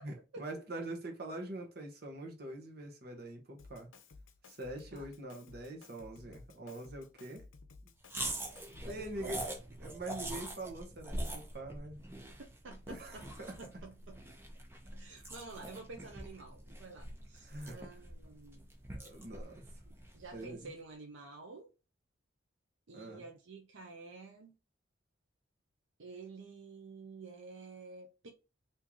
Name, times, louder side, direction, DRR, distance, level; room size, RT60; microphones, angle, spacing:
voice 1, 0.0-3.9 4.4-7.5 8.8-9.5 9.8-12.1 12.9-13.6 17.4-17.8 19.0-19.6 20.3-20.7 22.9-23.2, right 1 dB, 50° right, 1.0 m, -44 dB
Drum kit, 3.6-9.2, left 3 dB, 80° left, 0.6 m, -56 dB
sound 1, 8.1-20.5, right 1 dB, 10° right, 0.5 m, -44 dB
voice 2, 8.8-9.3 12.4-13.2 13.6-14.2 14.9-18.7 20.1-21.7 22.9-24.5 26.0-28.3, right 3 dB, 70° right, 0.6 m, -50 dB
3.6 x 2.8 x 3.0 m
head